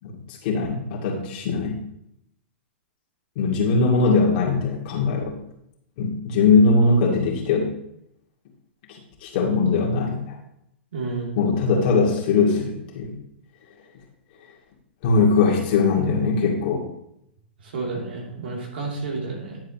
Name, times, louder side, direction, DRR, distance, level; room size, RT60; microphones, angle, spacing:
voice 1, 0.0-1.8 3.4-5.4 6.0-7.7 8.9-10.4 11.4-13.2 15.0-16.9, left 4 dB, 50° left, -2 dB, 2.4 m, -21 dB
voice 2, 10.9-11.3 17.6-19.6, right 3 dB, 65° right, -1 dB, 3.0 m, -31 dB
10.5 x 7.5 x 3.0 m, 0.80 s
figure-of-eight pair, 100°, 6 cm